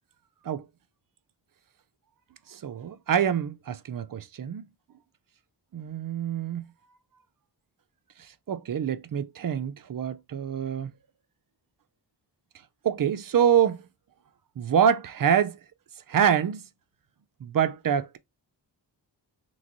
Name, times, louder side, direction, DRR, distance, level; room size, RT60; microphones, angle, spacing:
voice 1, 2.5-4.7 5.7-6.6 8.5-10.9 12.8-13.9 14.6-15.6 16.1-16.6 17.4-18.2, right 8 dB, 50° right, 0.5 m, -25 dB
3.3 x 3.1 x 2.6 m
wide cardioid pair, 75°, 45 cm